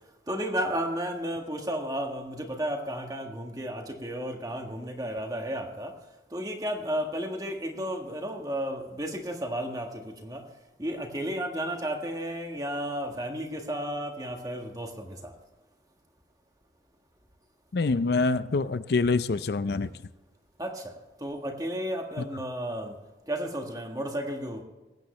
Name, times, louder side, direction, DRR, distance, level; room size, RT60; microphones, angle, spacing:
voice 1, 0.3-5.9 6.3-10.4 10.8-15.3 20.6-20.9 21.2-22.9 23.3-24.6, equal, 20° right, 3 dB, 1.5 m, -33 dB
voice 2, 17.7-19.9, left 3 dB, 65° left, 13 dB, 0.5 m, -25 dB
20.0 x 9.0 x 3.2 m, 1.1 s
head